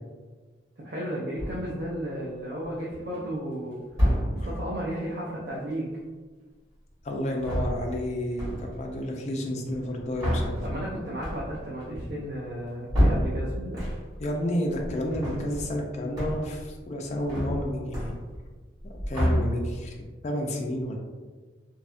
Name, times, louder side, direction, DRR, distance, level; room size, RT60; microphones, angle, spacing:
voice 1, 0.8-3.8 4.3-5.9 10.6-13.8, equal, 55° right, -5 dB, 0.4 m, -34 dB
sound 1, 1.4-1.9 2.6-3.2 3.9-4.7 7.3-8.1 8.4-8.9 9.7-14.3 14.7-15.9 16.2-16.7 16.9-18.5 18.8-19.9, equal, 20° right, 1.2 m, -29 dB
voice 2, 7.0-10.8 14.2-18.2 19.1-20.0 20.2-21.0, left 1 dB, 35° left, 0 dB, 0.3 m, -30 dB
2.7 x 2.2 x 2.4 m, 1.3 s
head